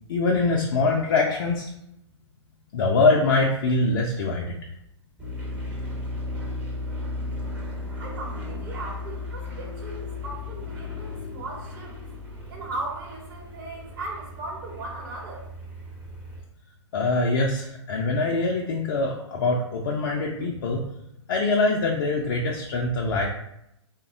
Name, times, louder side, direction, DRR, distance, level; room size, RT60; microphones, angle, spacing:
voice 1, 0.1-1.7 2.7-4.6 16.9-20.8 21.3-23.3, left 3 dB, 45° left, -1 dB, 0.4 m, -23 dB
sound 1, 5.2-16.4, left 2 dB, 10° right, 0.5 m, -35 dB
voice 2, 8.0-11.9 12.5-15.5, right 2 dB, 45° right, -1 dB, 0.8 m, -37 dB
3.3 x 2.1 x 2.4 m, 0.82 s
figure-of-eight pair, 115°, 15 cm